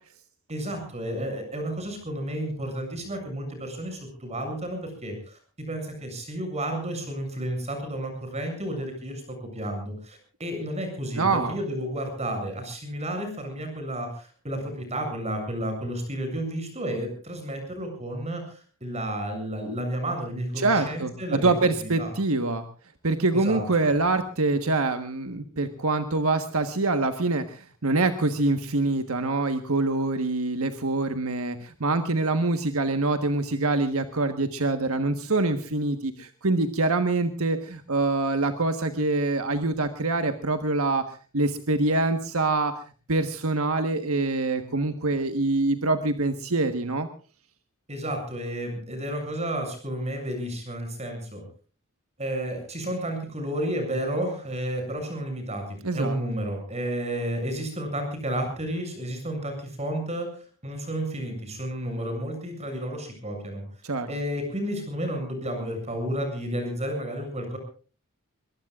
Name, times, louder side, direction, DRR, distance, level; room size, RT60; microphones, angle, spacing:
voice 1, 0.5-5.4 5.7-21.5 21.8-22.1 23.3-23.6 47.9-51.4 52.2-55.6 55.9-60.3 60.6-63.6 64.1-67.6, right 1 dB, 30° right, 5 dB, 7.3 m, -31 dB
voice 2, 11.2-11.5 20.6-22.7 23.0-42.7 43.1-47.1 55.8-56.2 63.8-64.1, right 2 dB, 75° right, 8 dB, 1.4 m, -25 dB
23.0 x 22.0 x 2.5 m, 0.39 s
head